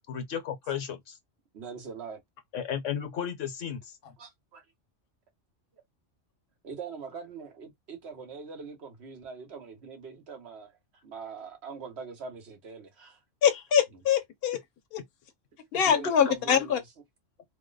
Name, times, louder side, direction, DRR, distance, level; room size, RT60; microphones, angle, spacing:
voice 1, 0.1-1.2 2.5-4.0, left 8 dB, 80° left, 1.2 m, -34 dB
voice 2, 1.5-2.2 4.2-4.6 6.6-10.7 11.0-13.2 13.9-14.0 15.8-16.8, right 5 dB, 60° right, 1.2 m, -42 dB
voice 3, 13.4-14.6 14.9-15.0 15.7-16.8, left 8 dB, 55° left, 0.9 m, -24 dB
2.9 x 2.1 x 3.8 m
omnidirectional pair, 1.3 m